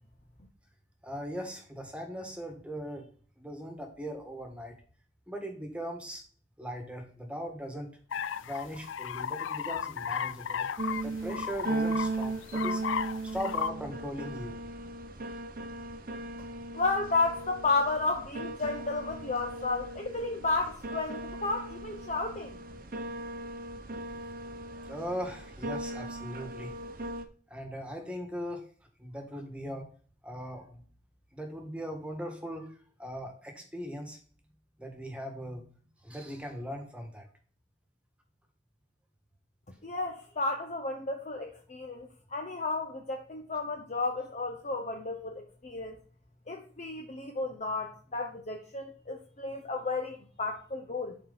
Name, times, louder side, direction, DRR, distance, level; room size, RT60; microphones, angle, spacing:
voice 1, 1.0-3.1 3.4-4.7 5.3-6.2 6.6-7.9 8.4-10.7 11.0-12.8 13.2-14.6 24.9-26.7 27.5-28.6 29.0-29.8 30.2-30.8 31.3-32.7 33.0-34.2 34.8-37.2, equal, 5° right, 1.6 m, -39 dB
sound 1, 8.1-13.7, left 7 dB, 90° left, 0.4 m, -34 dB
sound 2, 10.8-27.2, right 2 dB, 50° right, 0.9 m, -37 dB
voice 2, 16.7-22.6 39.8-46.0 46.5-51.2, left 3 dB, 40° left, 0.8 m, -32 dB
11.5 x 4.4 x 4.1 m
head